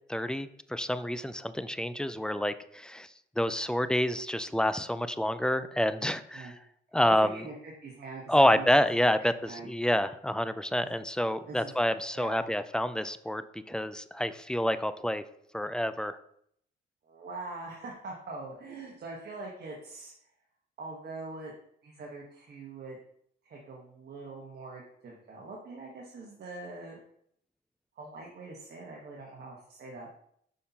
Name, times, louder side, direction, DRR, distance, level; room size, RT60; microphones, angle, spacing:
voice 1, 0.1-3.1 3.4-6.5 6.9-7.4 8.3-15.2 15.5-16.2, left 1 dB, 5° left, 12 dB, 0.3 m, -28 dB
voice 2, 7.0-9.7 10.8-10.9 11.5-11.7 12.1-12.5 17.0-20.1 20.8-21.6 21.8-23.0 23.4-27.0 28.0-30.1, right 3 dB, 55° right, -2 dB, 1.2 m, -43 dB
6.5 x 5.4 x 2.8 m, 0.69 s
cardioid pair, 90°, 20 cm